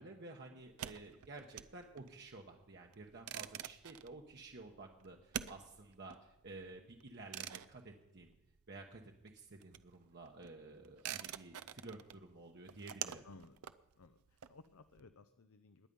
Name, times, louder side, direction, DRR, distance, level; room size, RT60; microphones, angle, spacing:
voice 1, 0.0-8.3 8.7-9.0 9.3-13.2, right 2 dB, 50° right, 1 dB, 1.0 m, -52 dB
sound 1, 0.6-9.0 9.2-15.0, right 10 dB, 85° right, 0.5 m, -48 dB
voice 2, 13.2-13.6 14.0-15.9, left 3 dB, 75° left, 11 dB, 0.6 m, -59 dB
19.5 x 9.9 x 5.4 m, 0.94 s
head